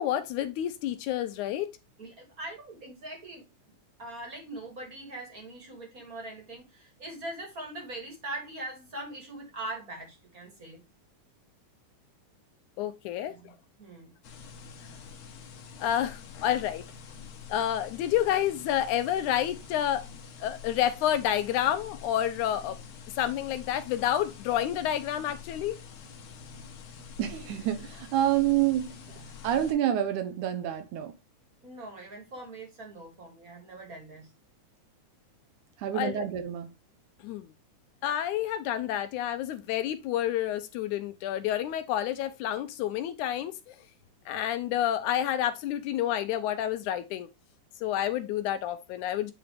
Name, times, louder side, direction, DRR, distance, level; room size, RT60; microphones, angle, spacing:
voice 1, 0.0-1.7 12.8-13.3 15.8-16.8 17.5-20.0 20.4-22.8 23.2-25.8 35.9-36.3 37.2-37.5 38.0-43.8 44.3-47.3 47.8-49.3, left 11 dB, 80° left, 1.9 m, -29 dB
voice 2, 2.0-3.5 4.0-10.8 13.2-13.5 13.8-14.1 31.6-34.3, right 2 dB, 30° right, 2.3 m, -41 dB
sound 1, 14.2-29.7, left 6 dB, 60° left, 2.0 m, -46 dB
voice 3, 27.2-28.9 29.4-31.1 35.8-36.7, right 11 dB, 75° right, 2.3 m, -27 dB
8.7 x 4.0 x 3.3 m
omnidirectional pair, 3.7 m